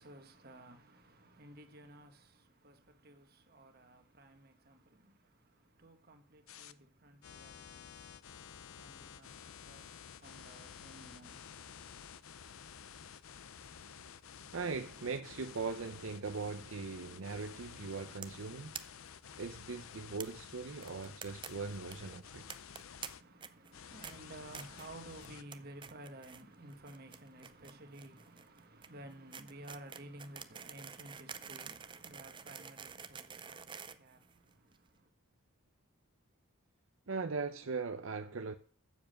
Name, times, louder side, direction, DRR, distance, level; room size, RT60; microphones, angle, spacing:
voice 1, 0.0-12.2 23.2-35.1, right 1 dB, 45° right, 1.4 m, -54 dB
sound 1, 6.5-6.7 7.2-23.2 23.7-25.4, left 7 dB, 80° left, 0.6 m, -52 dB
voice 2, 14.5-18.8 19.4-22.4 37.1-38.6, right 4 dB, 70° right, 0.6 m, -40 dB
sound 2, 18.2-18.4 18.7-18.8 19.1-19.2 19.4-19.5 20.2-20.3 20.8-21.5 21.7-21.9 22.5-23.1 23.4-23.7 24.0-24.1 24.5-24.9 25.2-25.6 25.8-26.4 26.7-34.7, right 7 dB, 25° right, 0.5 m, -47 dB
7.3 x 7.2 x 7.6 m
head